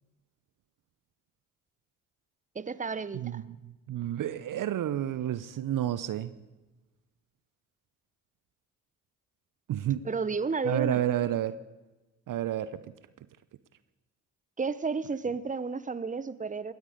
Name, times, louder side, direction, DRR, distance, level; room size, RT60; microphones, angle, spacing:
voice 1, 2.5-3.4 10.0-11.0 14.6-16.7, right 4 dB, 20° right, 16 dB, 0.9 m, -32 dB
voice 2, 3.1-6.3 9.7-10.0 10.6-11.6 12.3-12.8, right 11 dB, 55° right, 16 dB, 0.7 m, -30 dB
18.5 x 13.5 x 5.1 m, 1.1 s
hypercardioid pair, 45°, 38 cm